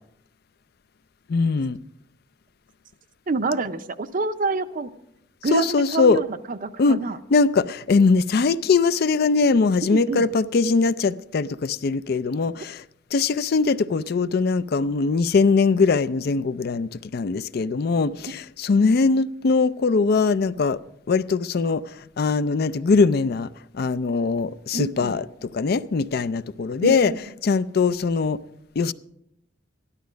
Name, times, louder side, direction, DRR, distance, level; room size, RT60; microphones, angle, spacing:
voice 1, 1.3-1.8 5.5-6.2 6.8-7.0 7.3-12.8 13.1-20.8 21.1-21.8 22.2-25.2 25.5-27.1 27.4-28.4 28.8-28.9, left 4 dB, 55° left, 0.4 m, -21 dB
voice 2, 3.3-4.9 5.4-7.2 9.9-10.3 24.7-25.2 26.8-27.2, right 3 dB, 45° right, 0.6 m, -27 dB
13.5 x 11.5 x 5.1 m
head